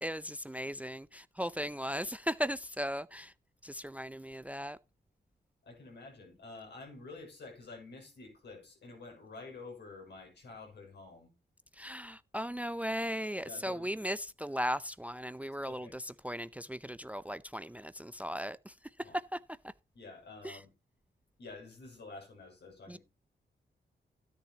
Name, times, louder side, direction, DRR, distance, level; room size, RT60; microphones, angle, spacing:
voice 1, 0.0-3.3 3.6-4.8 11.7-19.4 20.4-20.6 22.9-23.0, equal, 10° right, 0.5 m, -37 dB
voice 2, 5.7-11.3 13.4-13.9 15.7-16.0 19.0-19.2 19.9-20.7 21.4-23.0, left 3 dB, 75° left, 6.9 m, -49 dB
13.0 x 10.0 x 2.9 m
cardioid pair, 75°, 18 cm